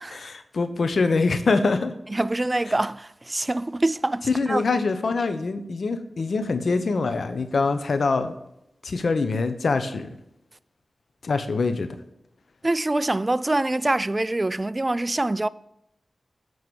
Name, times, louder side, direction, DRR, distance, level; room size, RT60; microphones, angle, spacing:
voice 1, 0.1-1.9 4.2-8.3 8.8-10.1 11.2-11.9, left 4 dB, 75° left, 0.8 m, -24 dB
voice 2, 2.1-4.6 12.6-15.5, right 2 dB, 30° right, 0.3 m, -25 dB
7.9 x 4.7 x 7.0 m
cardioid pair, 45°, 0 cm